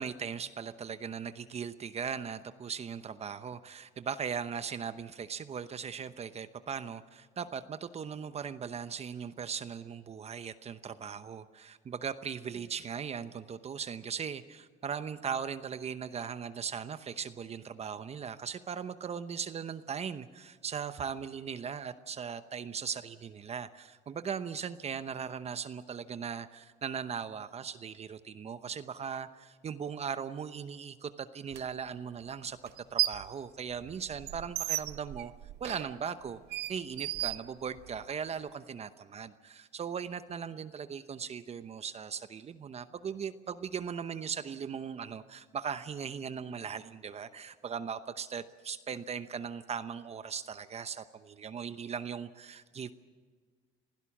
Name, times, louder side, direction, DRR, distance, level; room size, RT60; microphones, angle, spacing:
voice 1, 0.0-32.6 32.9-35.3 35.6-36.4 36.7-52.9, right 7 dB, 40° right, 12 dB, 0.9 m, -39 dB
sound 1, 31.5-31.6 32.7-33.3 33.7-38.1, right 15 dB, 75° right, 0.6 m, -35 dB
26.5 x 16.5 x 7.3 m, 1.5 s
cardioid pair, 110°, 17 cm